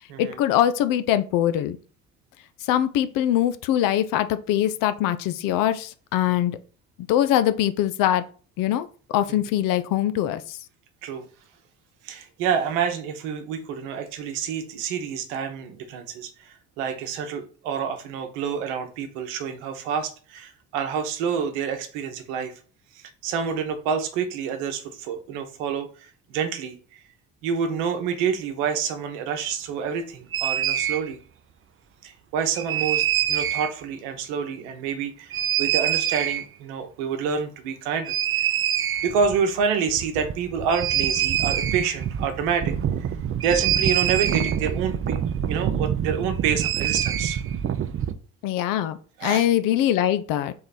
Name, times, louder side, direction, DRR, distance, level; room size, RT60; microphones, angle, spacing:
voice 1, 0.2-1.8 2.6-6.6 7.1-8.2 8.6-10.6 48.4-50.5, left 11 dB, 60° left, 0.6 m, -23 dB
voice 2, 12.0-22.5 22.9-27.0 27.4-31.2 32.0-38.2 39.0-42.7 43.0-43.1 43.4-45.2 45.5-47.4 49.2-49.5, right 7 dB, 75° right, 1.0 m, -28 dB
sound 1, 30.3-31.0 32.6-33.7 35.3-36.5 38.0-39.4 39.6-39.7 39.9-48.1, right 9 dB, 35° right, 0.6 m, -25 dB
3.8 x 3.1 x 4.1 m
hypercardioid pair, 55°, 37 cm